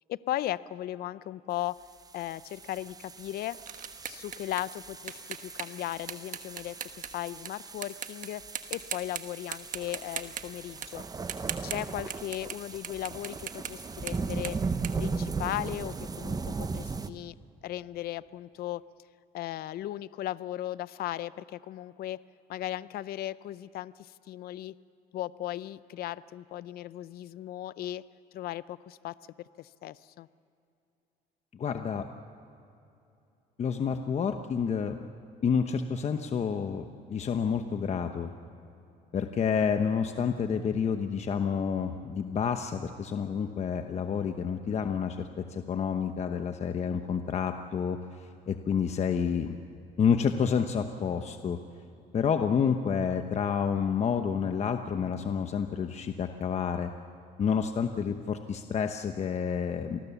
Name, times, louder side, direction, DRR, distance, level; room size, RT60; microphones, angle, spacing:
voice 1, 0.1-1.8 2.1-3.6 4.1-6.7 7.1-8.4 8.7-11.0 11.6-14.6 15.0-17.3 17.6-18.8 19.3-22.2 22.5-24.7 25.1-28.0 28.3-29.1 29.6-30.3, left 13 dB, 65° left, 17 dB, 0.6 m, -37 dB
sound 1, 1.9-17.1, right 4 dB, 20° right, 0.8 m, -38 dB
sound 2, 2.6-7.5 7.8-8.3 8.5-9.2 9.5-12.6 12.8-15.8, right 9 dB, 50° right, 1.4 m, -39 dB
voice 2, 31.5-32.1 33.6-35.0 35.4-38.3 39.1-49.6 50.0-51.6 52.1-56.9 57.4-60.0, left 6 dB, 40° left, 7 dB, 1.0 m, -29 dB
27.5 x 20.0 x 7.1 m, 2.7 s
cardioid pair, 110°, 17 cm